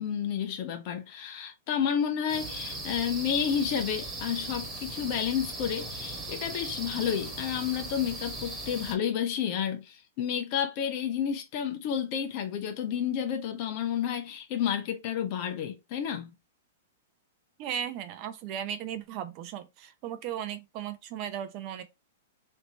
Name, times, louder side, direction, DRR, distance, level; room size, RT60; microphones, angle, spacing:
voice 1, 0.0-16.3, left 8 dB, 45° left, 1.0 m, -31 dB
sound 1, 2.3-9.0, right 2 dB, 10° right, 1.6 m, -38 dB
voice 2, 17.6-21.8, right 9 dB, 40° right, 0.7 m, -36 dB
3.3 x 2.9 x 4.1 m
hypercardioid pair, 135°, 0 cm